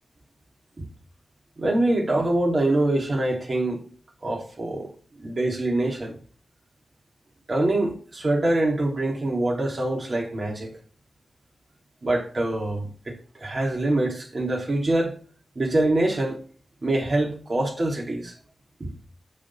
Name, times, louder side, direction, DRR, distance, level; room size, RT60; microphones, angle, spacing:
voice 1, 1.6-3.8 4.2-4.9 5.2-6.1 7.5-10.8 12.0-15.1 15.5-16.4 16.8-18.3 18.8-18.9, right 1 dB, 50° right, 3.1 m, -24 dB
11.5 x 4.2 x 7.4 m
cardioid pair, 45°, 0 cm